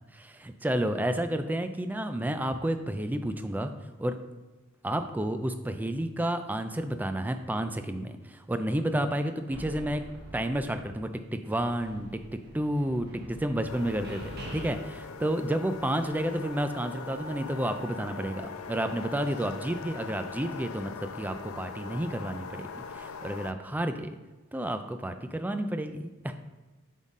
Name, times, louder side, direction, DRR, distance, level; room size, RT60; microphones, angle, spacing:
voice 1, 0.1-3.7 4.0-4.2 4.8-10.0 10.3-12.1 12.5-18.4 18.7-22.7 22.9-24.1 24.5-26.3, right 1 dB, 10° right, 8 dB, 0.3 m, -31 dB
sound 1, 9.5-11.2 11.4-14.7, equal, 50° right, 1.1 m, -44 dB
sound 2, 13.7-23.5, left 5 dB, 70° left, 0.4 m, -41 dB
8.0 x 3.7 x 3.7 m, 1.2 s
head